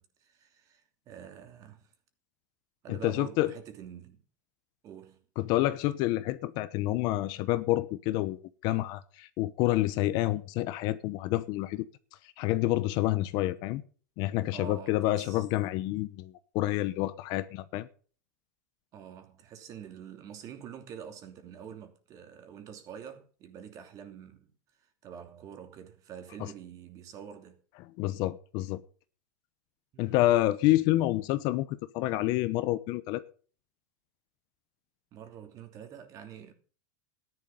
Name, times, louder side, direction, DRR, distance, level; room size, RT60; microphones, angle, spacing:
voice 1, 0.0-1.9 2.8-4.2 4.8-5.2 14.5-15.4 18.9-24.5 25.0-27.6 29.9-30.2 35.1-36.5, right 8 dB, 35° right, 2.9 m, -46 dB
voice 2, 3.0-3.5 5.4-11.9 12.4-13.8 14.2-17.9 28.0-28.8 30.0-31.7 31.9-33.2, left 16 dB, 50° left, 1.0 m, -28 dB
14.0 x 10.5 x 5.4 m
supercardioid pair, 130°, 10 cm